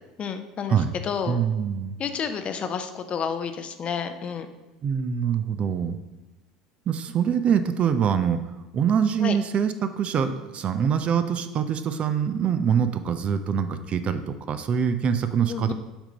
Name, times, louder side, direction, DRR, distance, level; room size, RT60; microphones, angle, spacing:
voice 1, 0.2-1.4 2.0-4.5 9.2-9.4 15.5-15.7, left 7 dB, 35° left, 8 dB, 0.6 m, -30 dB
voice 2, 1.3-1.9 4.8-6.0 6.9-8.4 8.7-15.7, right 7 dB, 35° right, 10 dB, 0.5 m, -24 dB
7.2 x 3.7 x 5.1 m, 1.1 s
figure-of-eight pair, 70°, 3 cm